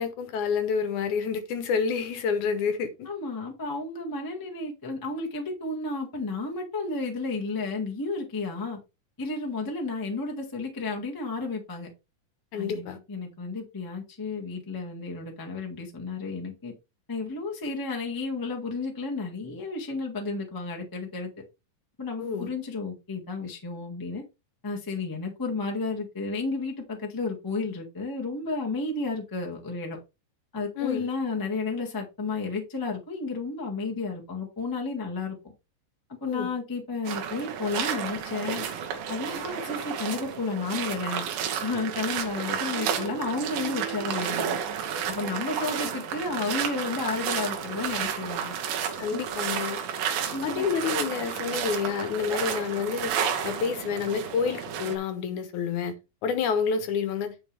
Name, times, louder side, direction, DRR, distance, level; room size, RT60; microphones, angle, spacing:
voice 1, 0.0-3.1 12.5-13.0 22.2-22.5 30.8-31.1 36.2-36.5 49.0-49.8 50.4-53.1 53.4-57.4, left 6 dB, 70° left, 2.3 m, -29 dB
voice 2, 3.0-8.8 9.2-11.9 12.6-16.7 17.1-21.3 22.0-24.2 24.6-30.0 30.5-35.3 36.2-38.6 39.1-41.2 41.6-44.6 45.1-48.5 49.1-49.3 50.3-50.7, left 3 dB, 15° left, 0.8 m, -32 dB
sound 1, 37.0-55.0, right 8 dB, 90° right, 2.9 m, -31 dB
9.6 x 5.8 x 3.4 m
omnidirectional pair, 3.9 m